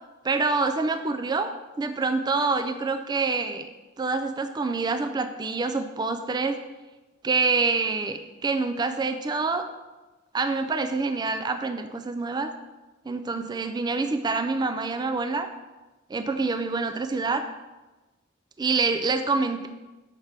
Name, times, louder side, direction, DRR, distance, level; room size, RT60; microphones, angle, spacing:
voice 1, 0.2-1.5 1.8-3.7 4.0-6.6 7.2-9.7 10.3-12.5 13.1-15.5 16.1-17.4 18.6-19.7, right 4 dB, 20° right, 7 dB, 0.3 m, -26 dB
5.9 x 5.7 x 3.3 m, 1.1 s
head